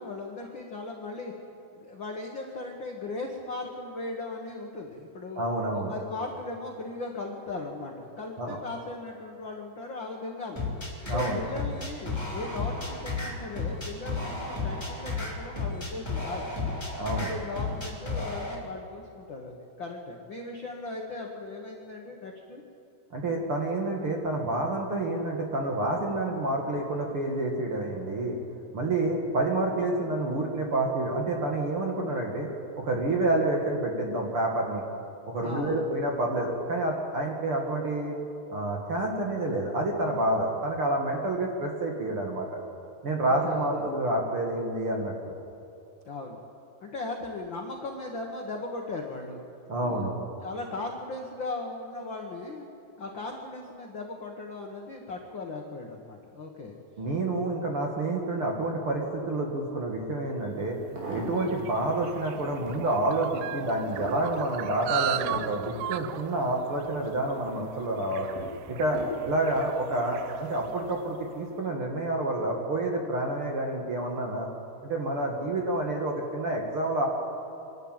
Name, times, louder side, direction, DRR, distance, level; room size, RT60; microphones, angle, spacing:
voice 1, 0.0-1.3 1.7-5.4 5.7-10.6 11.0-16.8 17.1-22.6 35.4-35.8 43.3-43.8 46.0-46.4 46.8-49.4 49.8-50.1 50.4-52.7 53.0-56.8, left 2 dB, 75° left, 1 dB, 1.1 m, -38 dB
voice 2, 5.4-5.9 8.4-8.6 11.1-11.4 17.0-17.3 23.1-28.4 28.7-32.5 32.8-34.8 35.3-38.2 38.5-42.5 43.0-45.4 49.7-50.1 57.0-60.8 61.1-68.3 68.7-69.0 69.2-74.5 74.8-77.1, right 2 dB, 45° right, 0 dB, 1.9 m, -28 dB
sound 1, 10.5-18.5, left 3 dB, 5° left, 2.7 m, -33 dB
sound 2, 60.0-60.1 60.7-61.7 62.2-62.9 63.4-66.8 67.2-67.7 68.4-69.7 70.5-70.8 71.1-71.2, right 1 dB, 65° right, 5.1 m, -41 dB
sound 3, 60.7-71.3, right 14 dB, 85° right, 2.6 m, -38 dB
24.0 x 12.5 x 9.0 m, 2.7 s
omnidirectional pair, 4.6 m